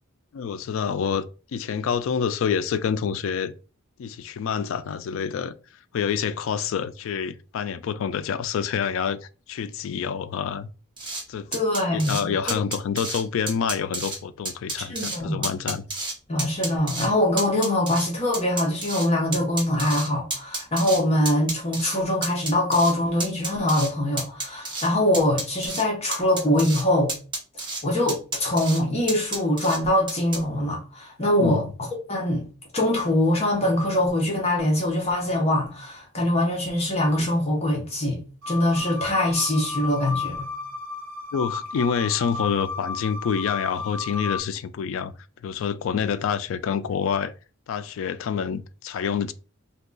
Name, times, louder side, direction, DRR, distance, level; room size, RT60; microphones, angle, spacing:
voice 1, 0.3-1.3 1.5-3.5 4.0-5.5 5.9-10.7 11.3-11.5 11.9-15.8 31.4-31.7 41.3-45.1 45.4-47.3 47.7-49.3, left 7 dB, 65° left, 0.3 m, -27 dB
sound 1, 11.0-11.2 11.5-12.2 12.5-13.2 13.5-14.2 14.5-15.2 15.4-16.1 16.4-17.1 17.4-19.1 19.3-21.0 21.3-22.0 22.2-22.9 23.2-23.9 24.2-24.9 25.1-25.8 26.1-26.8 27.1-27.8 28.1-28.8 29.1-29.8 30.1-30.4, right 2 dB, 25° right, 0.9 m, -30 dB
voice 2, 11.5-12.6 14.8-15.5 16.3-27.1 27.8-31.6 32.1-32.4 32.7-38.2 38.5-40.5, left 1 dB, 30° left, 0.8 m, -23 dB
sound 2, 38.4-44.4, left 4 dB, 80° right, 0.7 m, -33 dB
2.8 x 2.3 x 3.8 m
head